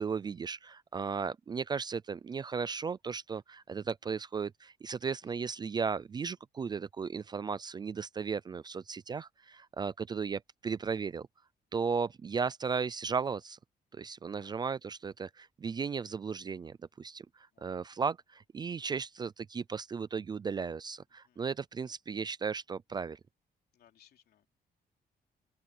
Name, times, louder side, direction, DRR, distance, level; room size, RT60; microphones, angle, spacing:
voice 1, 0.0-11.3 11.7-13.6 13.9-23.2, right 5 dB, 25° right, 0.4 m, -35 dB
voice 2, 5.0-5.3 14.3-14.6 17.5-17.8 21.2-21.4 23.7-24.5, left 10 dB, 70° left, 3.2 m, -65 dB
open air
cardioid pair, 170°, 17 cm